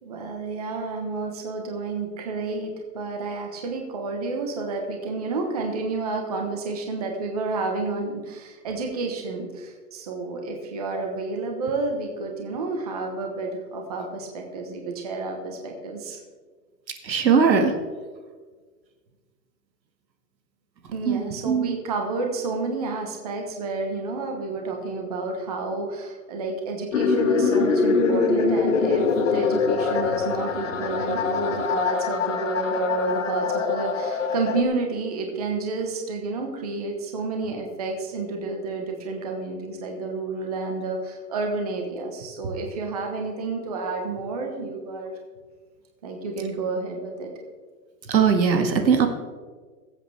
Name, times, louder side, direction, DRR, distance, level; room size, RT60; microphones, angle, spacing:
voice 1, 0.0-16.2 20.9-29.1 29.3-45.2 46.0-47.3, right 3 dB, 25° right, 2 dB, 1.1 m, -30 dB
voice 2, 17.0-17.7 21.1-21.7 48.1-49.1, right 6 dB, 85° right, 5 dB, 2.1 m, -20 dB
sound 1, 26.9-34.6, left 4 dB, 50° left, 1.3 m, -23 dB
21.5 x 8.1 x 3.4 m, 1.5 s
hypercardioid pair, 175°, 50 cm